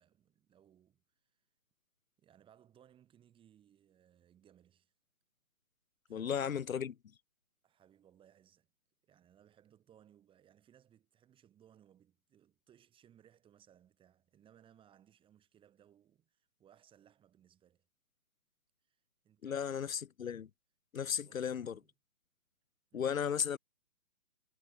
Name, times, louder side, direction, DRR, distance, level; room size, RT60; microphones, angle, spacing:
voice 1, 0.0-1.4 2.2-4.9 6.1-6.7 7.6-8.7 9.0-17.9 18.8-19.9 21.0-21.9 22.9-23.2, right 10 dB, 10° right, 5.1 m, -65 dB
voice 2, 6.1-6.9 19.4-20.5 20.9-21.8 22.9-23.6, left 8 dB, 70° left, 0.9 m, -35 dB
figure-of-eight pair, 145°, 42 cm